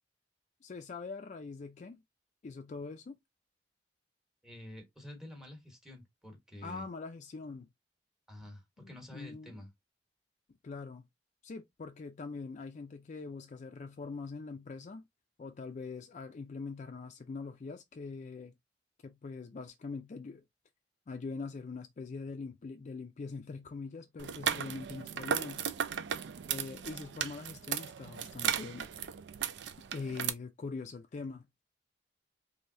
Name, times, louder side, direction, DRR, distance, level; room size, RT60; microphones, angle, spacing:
voice 1, 0.6-2.0 2.4-3.2 6.6-7.7 8.8-9.6 10.6-11.0 11.4-15.1 15.4-18.5 19.0-20.4 21.1-25.7 26.5-28.9 29.9-31.5, left 4 dB, 45° left, 0.4 m, -43 dB
voice 2, 4.4-6.8 8.3-9.7, left 1 dB, 5° right, 1.1 m, -49 dB
sound 1, 24.2-30.3, right 8 dB, 70° right, 0.4 m, -36 dB
3.2 x 2.7 x 2.6 m
head